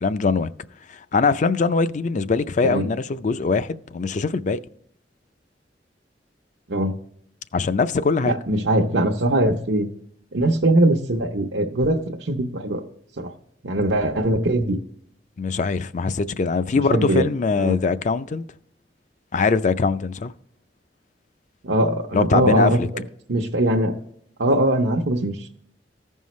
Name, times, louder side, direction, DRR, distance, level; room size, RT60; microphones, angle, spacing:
voice 1, 0.0-0.5 0.9-4.6 7.5-8.4 15.4-18.4 19.3-20.3 22.1-22.9, left 4 dB, 45° left, 0.4 m, -22 dB
voice 2, 8.3-9.9 10.3-12.9 13.2-13.3 13.6-14.8 16.9-17.3 17.6-17.8 21.6-23.0 23.3-24.0 24.4-25.5, right 1 dB, 85° right, 0.9 m, -21 dB
15.0 x 5.5 x 3.1 m
head